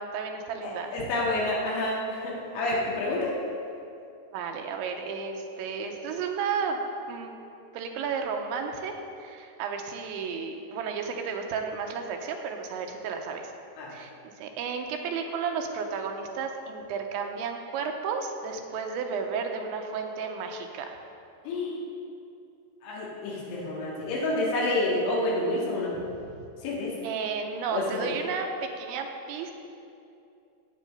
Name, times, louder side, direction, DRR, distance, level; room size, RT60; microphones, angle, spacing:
voice 1, 0.0-1.1 4.3-7.3 7.7-13.5 13.9-14.1 14.4-21.0 26.0-26.1 27.0-29.5, right 5 dB, 80° right, 3 dB, 3.2 m, -33 dB
voice 2, 0.6-3.3 13.8-14.0 21.5-21.8 22.8-25.9 26.6-26.9 27.7-28.0, left 2 dB, 85° left, -5 dB, 4.7 m, -29 dB
16.5 x 8.5 x 5.5 m, 2.6 s
omnidirectional pair, 5.4 m